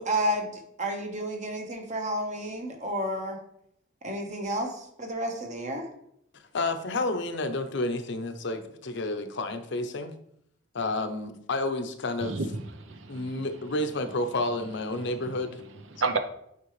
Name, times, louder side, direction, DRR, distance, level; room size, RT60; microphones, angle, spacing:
voice 1, 0.0-3.4 4.0-5.9, right 1 dB, 40° right, 4 dB, 1.1 m, -31 dB
voice 2, 6.5-10.1 10.7-12.4 13.1-15.6, left 2 dB, 65° left, 8 dB, 0.7 m, -30 dB
voice 3, 12.2-13.4 13.8-14.5 14.9-16.2, right 3 dB, 70° right, 8 dB, 0.7 m, -34 dB
8.4 x 4.7 x 3.2 m, 0.74 s
head